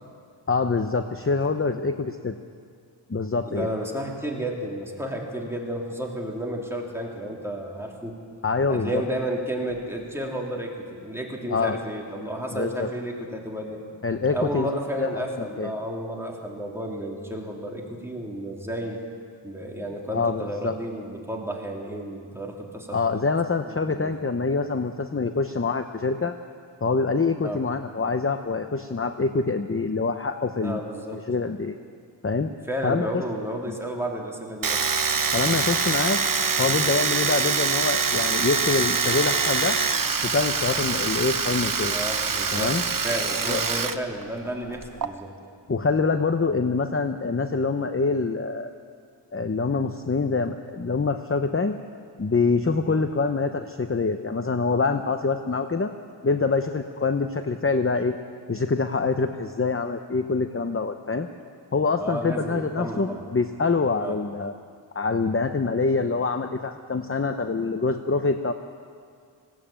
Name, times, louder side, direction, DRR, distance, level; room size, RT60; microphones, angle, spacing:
voice 1, 0.5-2.3 3.1-3.7 8.4-9.0 11.5-11.8 12.5-12.9 14.0-14.7 15.0-15.3 15.6-15.7 20.1-20.7 22.9-26.3 26.8-30.8 31.1-31.7 32.2-32.5 32.8-33.1 35.3-36.2 36.6-39.8 40.2-41.9 42.5-42.8 43.5-43.6 45.7-48.7 49.3-51.8 52.2-55.9 56.2-58.1 58.5-61.3 61.7-64.5 64.9-68.5, left 4 dB, 30° left, 8 dB, 0.8 m, -25 dB
voice 2, 3.5-8.2 8.7-13.8 14.3-19.0 19.4-23.3 23.6-24.1 27.4-27.6 30.6-31.3 32.7-34.8 41.8-42.7 43.0-45.3 52.9-53.0 62.0-63.2 64.0-64.2, equal, 5° right, -1 dB, 3.5 m, -32 dB
Domestic sounds home sounds, 34.6-44.0 44.2-45.1, right 5 dB, 45° right, 0.9 m, -24 dB
20.0 x 16.5 x 8.9 m, 2.2 s
wide cardioid pair, 75°, 47 cm